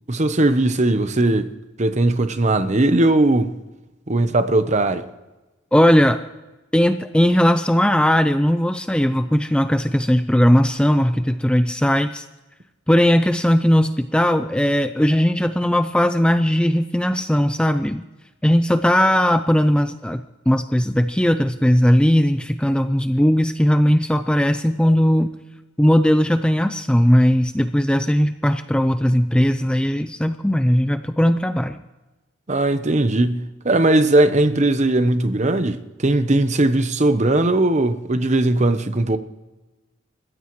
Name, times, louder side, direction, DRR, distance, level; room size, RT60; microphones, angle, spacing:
voice 1, 0.1-1.5 1.8-3.5 4.1-5.0 32.5-39.2, right 2 dB, 35° right, 0.8 m, -18 dB
voice 2, 5.7-6.2 6.7-12.3 12.9-18.0 18.4-25.3 25.8-31.8, equal, 5° left, 0.4 m, -18 dB
29.0 x 15.0 x 3.1 m
head